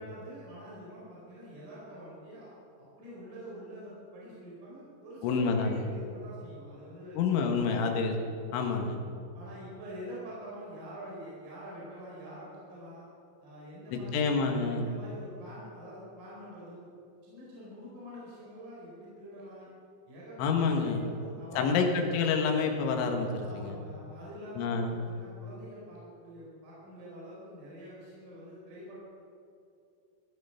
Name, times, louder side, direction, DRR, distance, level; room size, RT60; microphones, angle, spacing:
voice 1, 0.0-7.9 9.3-13.1 13.4-16.9 17.2-19.7 20.1-22.1 23.4-29.0, equal, 40° right, -7 dB, 5.7 m, -46 dB
voice 2, 5.2-5.9 7.1-8.2 8.5-9.0 13.9-14.9 20.4-21.0 21.6-23.8 24.6-24.9, left 5 dB, 70° left, 3 dB, 3.6 m, -28 dB
15.5 x 15.0 x 5.8 m, 2.5 s
omnidirectional pair, 6.0 m